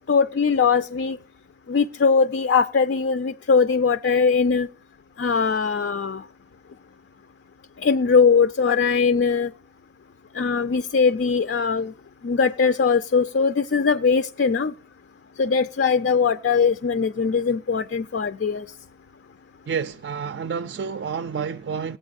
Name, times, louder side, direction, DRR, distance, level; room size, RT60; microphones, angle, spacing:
voice 1, 0.1-1.2 1.7-4.7 5.2-6.2 7.8-9.5 10.3-11.9 12.2-14.7 15.4-18.7, left 5 dB, 80° left, 0.4 m, -21 dB
voice 2, 19.7-22.0, right 6 dB, 75° right, 0.4 m, -29 dB
17.0 x 9.0 x 2.4 m
head